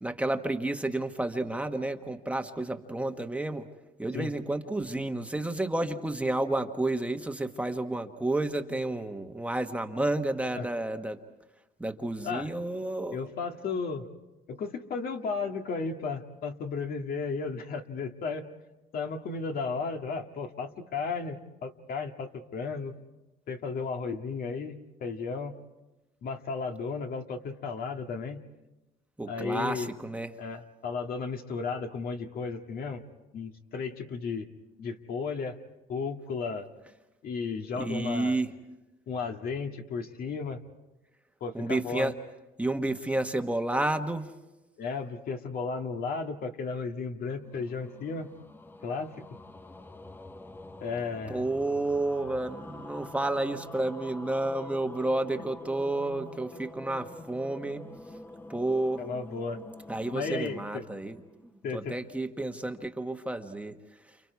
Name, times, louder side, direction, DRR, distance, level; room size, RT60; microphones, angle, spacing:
voice 1, 0.0-3.7 4.0-11.2 11.8-13.2 29.2-30.3 37.8-38.5 41.5-42.1 42.6-44.3 51.3-57.8 58.5-59.0 59.9-61.2 61.4-63.8, right 2 dB, 10° right, 5 dB, 1.3 m, -31 dB
voice 2, 13.1-14.1 14.5-18.5 18.9-22.9 23.5-25.5 26.2-28.4 29.3-29.9 30.4-33.0 33.3-34.5 34.8-35.6 35.9-36.7 37.2-38.4 39.1-40.6 41.4-42.1 44.8-48.3 48.8-49.2 50.8-51.4 59.0-59.6 60.1-60.9 61.6-62.0, left 4 dB, 60° left, 4 dB, 2.0 m, -34 dB
sound 1, 47.3-61.7, left 1 dB, 10° left, 0.8 m, -47 dB
29.5 x 29.5 x 4.8 m, 1.0 s
cardioid pair, 110°, 17 cm